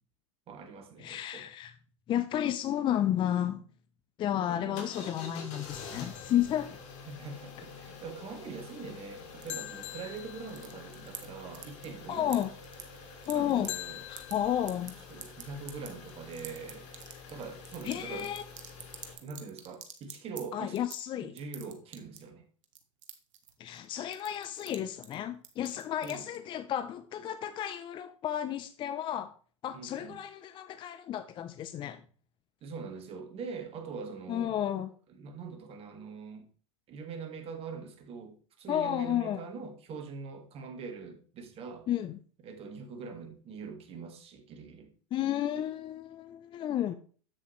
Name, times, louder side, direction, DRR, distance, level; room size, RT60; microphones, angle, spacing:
voice 1, 0.5-1.5 4.5-5.2 7.1-12.5 13.3-14.0 15.1-16.9 17.3-18.3 19.1-20.7 21.2-22.5 26.0-26.3 29.7-30.2 32.6-34.6 35.1-36.4 36.9-41.9 42.4-44.9, right 5 dB, 35° right, 1.8 m, -43 dB
voice 2, 1.0-1.7 2.1-3.6 4.2-6.8 12.1-12.5 13.3-13.7 14.1-14.9 17.8-18.4 20.5-21.3 23.6-29.3 29.6-32.0 34.3-34.9 38.7-39.4 41.9-42.2 45.1-46.9, left 11 dB, 30° left, 0.5 m, -32 dB
sound 1, 4.8-19.1, left 5 dB, 50° left, 2.4 m, -48 dB
sound 2, 5.7-7.3 9.5-11.1 13.7-14.7, left 14 dB, 75° left, 0.7 m, -44 dB
sound 3, 9.4-10.2 10.5-11.3 11.5-12.0 12.3-13.7 14.0-14.3 14.7-20.4 20.8-21.0 21.4-22.3 22.6-23.9 24.1-24.8 25.0-25.1 25.4-26.4, right 9 dB, 80° right, 1.2 m, -45 dB
7.7 x 7.4 x 3.1 m
hypercardioid pair, 95°, 16 cm